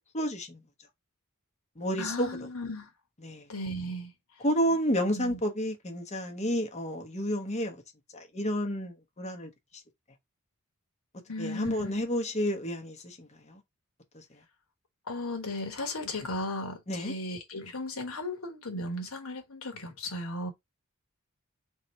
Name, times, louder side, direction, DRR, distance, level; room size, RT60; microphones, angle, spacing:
voice 1, 0.1-0.6 1.8-2.3 3.2-3.5 4.4-7.8 8.1-9.5 11.4-13.6 14.1-14.2 16.9-17.1, equal, 30° left, 1.1 m, -30 dB
voice 2, 2.0-2.9 3.5-4.1 5.1-5.4 11.3-12.1 15.1-20.5, left 1 dB, 65° left, 1.5 m, -36 dB
3.7 x 3.0 x 4.4 m
head